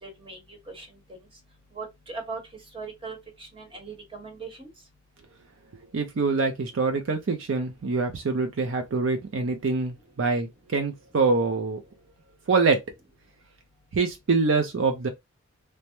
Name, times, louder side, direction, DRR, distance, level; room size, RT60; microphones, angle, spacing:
voice 1, 0.0-1.2 1.7-2.4 2.7-4.7, right 4 dB, 25° right, 1.0 m, -39 dB
voice 2, 5.9-11.8 12.5-12.8 13.9-15.1, right 4 dB, 70° right, 0.5 m, -25 dB
3.2 x 2.0 x 2.9 m
head